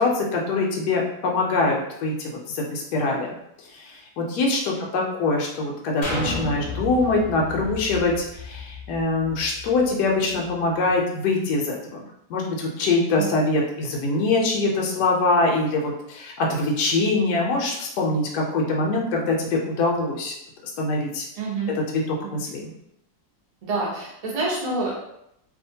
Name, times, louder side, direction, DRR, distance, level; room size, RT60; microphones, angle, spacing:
voice 1, 0.0-3.4 3.7-12.0 12.3-20.3 20.8-21.2 21.9-22.7, left 2 dB, 75° left, -1 dB, 1.1 m, -23 dB
sound 1, 6.0-9.8 10.3-10.4, left 2 dB, 40° left, 0.8 m, -33 dB
voice 2, 21.4-21.7 22.2-22.3 23.6-24.9, right 3 dB, 40° right, -5 dB, 0.5 m, -27 dB
2.7 x 2.4 x 2.7 m, 0.78 s
omnidirectional pair, 1.8 m